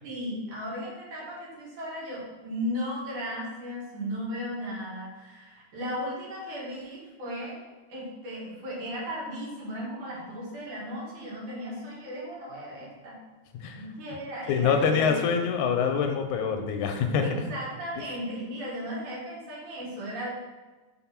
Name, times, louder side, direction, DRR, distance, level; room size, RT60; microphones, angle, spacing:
voice 1, 0.0-7.6 7.9-13.2 13.8-15.2 17.2-20.3, equal, 75° right, -5 dB, 3.5 m, -36 dB
voice 2, 14.5-17.4, left 6 dB, 85° left, 5 dB, 2.1 m, -25 dB
5.9 x 4.3 x 5.8 m, 1.2 s
omnidirectional pair, 3.6 m